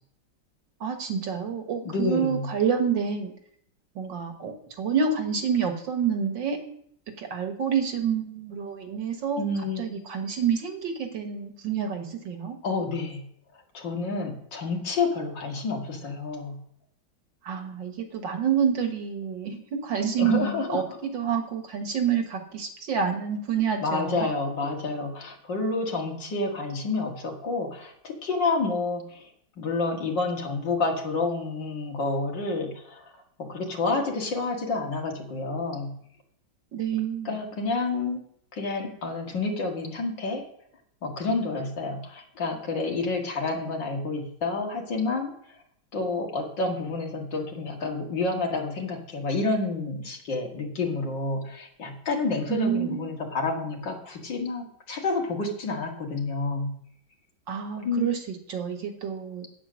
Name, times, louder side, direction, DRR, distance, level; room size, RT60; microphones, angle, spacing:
voice 1, 0.8-3.3 4.0-6.6 7.2-9.4 9.8-12.6 17.5-24.3 36.7-37.3 52.5-53.1 57.5-58.2 58.5-59.4, right 7 dB, 70° right, 5 dB, 2.0 m, -28 dB
voice 2, 1.8-2.5 9.4-10.0 12.6-13.2 13.7-16.6 20.2-21.0 23.8-29.3 29.6-33.1 33.4-35.9 37.2-38.2 38.5-40.4 41.0-45.3 45.9-56.7 57.8-58.1, left 3 dB, 65° left, 1 dB, 2.6 m, -29 dB
9.3 x 8.6 x 6.3 m, 0.68 s
omnidirectional pair, 2.1 m